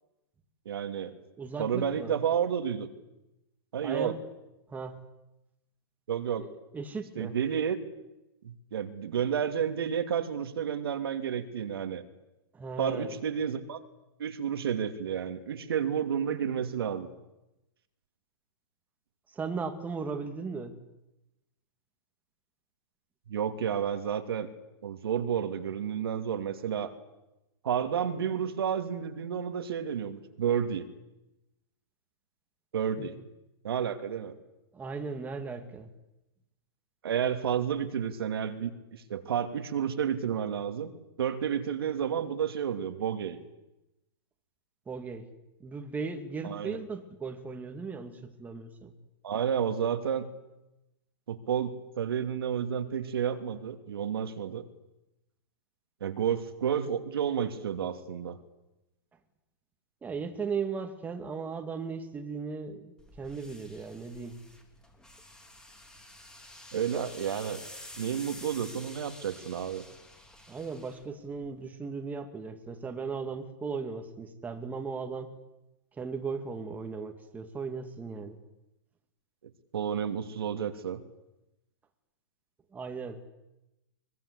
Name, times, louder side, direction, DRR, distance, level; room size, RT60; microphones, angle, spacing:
voice 1, 0.6-1.1 1.6-2.9 3.7-4.2 6.1-6.4 7.2-7.8 8.4-12.0 12.8-13.8 14.2-17.1 23.3-24.5 24.8-26.9 27.6-30.8 32.7-33.2 33.6-34.3 37.0-40.9 41.2-43.4 46.4-46.8 49.2-50.3 51.3-54.6 56.0-58.4 66.7-67.6 68.0-69.8 79.7-81.0, right 8 dB, 75° right, 7 dB, 2.7 m, -31 dB
voice 2, 1.4-2.1 3.8-4.2 4.7-5.1 6.4-7.4 12.5-13.1 19.3-20.8 33.0-33.1 34.7-35.9 44.9-45.3 45.6-48.9 60.0-64.4 70.5-75.4 75.9-78.4 82.7-83.2, right 5 dB, 10° right, 5 dB, 2.4 m, -37 dB
sound 1, 63.0-71.6, left 1 dB, 5° left, 3.7 m, -49 dB
23.5 x 22.5 x 8.4 m, 0.94 s
hypercardioid pair, 130°, 13 cm